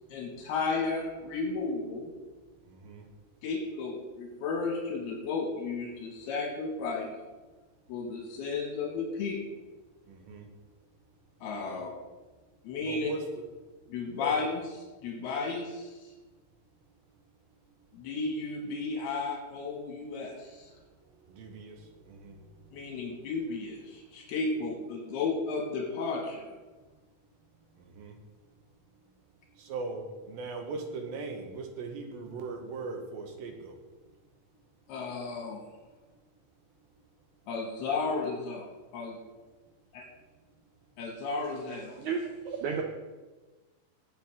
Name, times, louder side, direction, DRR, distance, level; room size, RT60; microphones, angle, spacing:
voice 1, 0.1-2.1 3.4-7.1 7.9-9.4 11.4-11.9 12.6-13.1 13.9-16.1 17.9-20.7 22.7-26.5 34.9-35.6 37.5-39.2 39.9-40.1 41.0-42.0, left 4 dB, 80° left, -1 dB, 3.6 m, -33 dB
voice 2, 10.1-10.4 11.6-11.8 12.9-13.2 14.2-14.4 21.4-21.8 22.1-22.4 28.0-28.1 29.7-33.7 42.7-42.8, right 3 dB, 75° right, 3 dB, 2.9 m, -39 dB
voice 3, 42.0-42.8, right 6 dB, 90° right, 2 dB, 1.6 m, -32 dB
18.5 x 7.6 x 3.6 m, 1.2 s
omnidirectional pair, 4.5 m